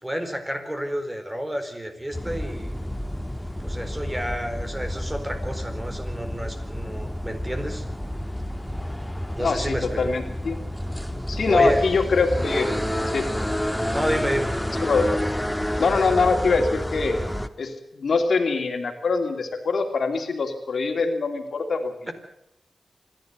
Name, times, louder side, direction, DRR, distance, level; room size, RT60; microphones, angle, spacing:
voice 1, 0.0-2.7 3.4-7.9 9.3-10.0 11.5-11.8 13.9-14.5 22.1-22.2, equal, 15° right, 7 dB, 4.2 m, -29 dB
sound 1, 2.1-17.5, equal, 5° left, 1.5 m, -29 dB
voice 2, 9.4-10.6 11.3-12.7 13.1-13.3 14.8-15.1 15.8-17.2 17.6-22.1, left 4 dB, 75° left, 5 dB, 2.8 m, -23 dB
26.0 x 12.0 x 9.5 m, 0.79 s
cardioid pair, 60°, 0 cm